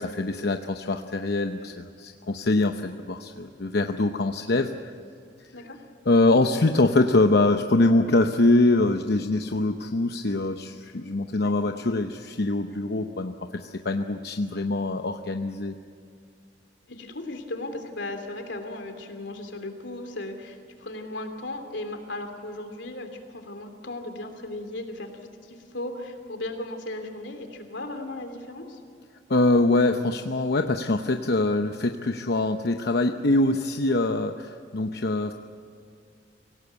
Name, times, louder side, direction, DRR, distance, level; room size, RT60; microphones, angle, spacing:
voice 1, 0.0-4.9 6.0-15.8 29.3-35.3, left 2 dB, 65° left, 6 dB, 0.8 m, -24 dB
voice 2, 16.9-25.1 25.4-28.8, left 2 dB, 85° left, 6 dB, 3.1 m, -36 dB
25.0 x 17.5 x 8.3 m, 2.3 s
head